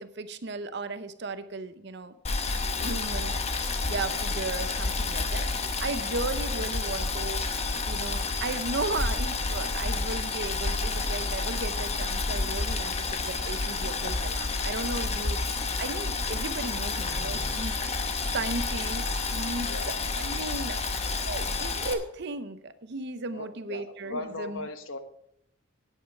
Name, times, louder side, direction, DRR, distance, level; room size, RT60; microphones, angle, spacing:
voice 1, 0.0-2.2 2.6-3.4 3.9-7.5 7.8-20.8 21.2-24.7, right 3 dB, 55° right, 12 dB, 0.7 m, -36 dB
Boiling, 2.2-21.9, left 3 dB, 30° left, 0.9 m, -30 dB
voice 2, 2.7-3.0 4.1-4.2 19.7-19.9 23.3-25.0, left 2 dB, 75° left, 9 dB, 1.1 m, -39 dB
9.3 x 8.6 x 5.4 m, 0.75 s
head